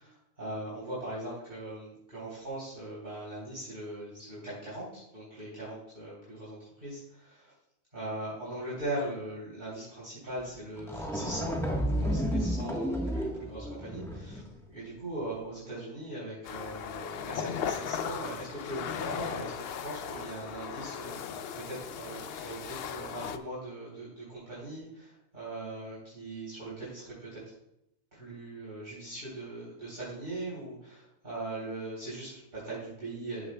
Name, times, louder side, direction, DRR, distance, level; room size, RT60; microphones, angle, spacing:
voice 1, 0.0-7.5 7.9-11.5 11.9-27.4 28.1-33.5, right 1 dB, 40° right, -9 dB, 3.6 m, -40 dB
sound 1, 10.4-10.5 10.8-14.5, equal, ahead, 1.2 m, -32 dB
sound 2, 16.4-23.4, left 8 dB, 65° left, 0.7 m, -37 dB
14.0 x 6.5 x 2.3 m, 0.83 s
omnidirectional pair, 1.2 m